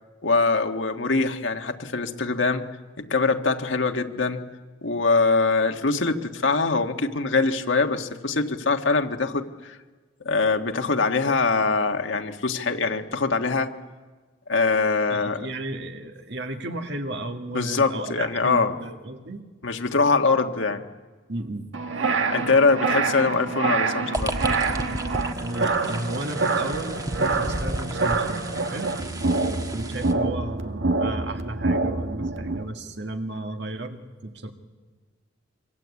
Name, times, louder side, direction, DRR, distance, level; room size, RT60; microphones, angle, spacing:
voice 1, 0.2-4.5 4.8-9.8 10.2-13.7 14.5-15.4 17.5-18.7 19.6-20.8 22.3-24.3, left 4 dB, 80° left, 5 dB, 1.6 m, -23 dB
voice 2, 15.1-19.4 21.3-21.7 25.4-29.0 29.4-34.5, right 1 dB, 60° right, 5 dB, 2.1 m, -34 dB
sound 1, 21.7-32.6, right 3 dB, 90° right, 1.6 m, -26 dB
sound 2, 24.1-30.1, right 1 dB, 20° right, 1.3 m, -33 dB
25.5 x 24.5 x 8.4 m, 1.4 s
head